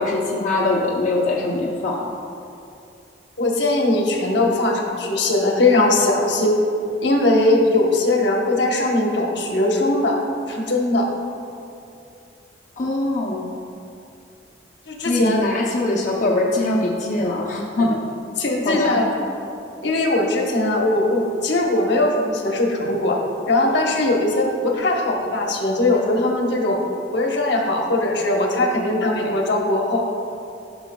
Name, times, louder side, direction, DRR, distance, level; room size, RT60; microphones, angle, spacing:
voice 1, 0.0-2.0 12.8-13.5 15.0-18.0 18.6-19.0, left 2 dB, 45° left, -4 dB, 0.6 m, -22 dB
voice 2, 3.4-6.5 7.0-10.2 10.5-11.1 14.9-15.5 17.8-17.9 18.4-19.1 19.8-26.8 27.1-30.1, left 2 dB, 70° left, 0 dB, 1.0 m, -20 dB
12.5 x 6.0 x 2.3 m, 2.6 s
head